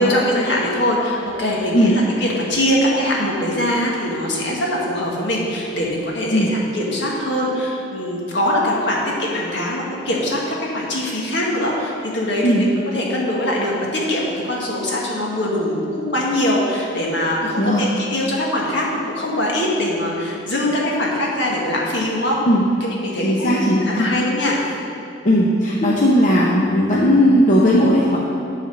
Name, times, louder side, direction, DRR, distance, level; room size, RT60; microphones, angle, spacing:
voice 1, 0.0-22.4 22.8-24.6, left 1 dB, 65° left, -3 dB, 1.7 m, -22 dB
voice 2, 23.2-24.1 25.2-28.2, equal, 40° left, -5 dB, 0.8 m, -16 dB
11.0 x 4.1 x 6.5 m, 2.6 s
head